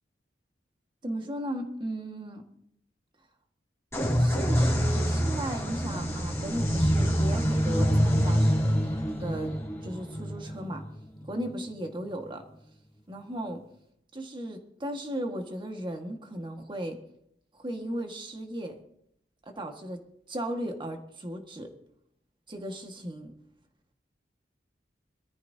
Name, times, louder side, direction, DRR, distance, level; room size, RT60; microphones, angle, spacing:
voice 1, 1.0-2.4 4.2-8.6 9.2-9.5 9.8-10.8 11.2-12.4 13.1-13.6 14.1-17.0 17.5-18.8 19.4-20.0 20.3-21.7 22.5-23.3, right 1 dB, 30° right, 4 dB, 1.7 m, -36 dB
sound 1, 3.9-11.5, equal, 15° left, 2.6 m, -26 dB
22.5 x 14.0 x 2.8 m, 0.74 s
head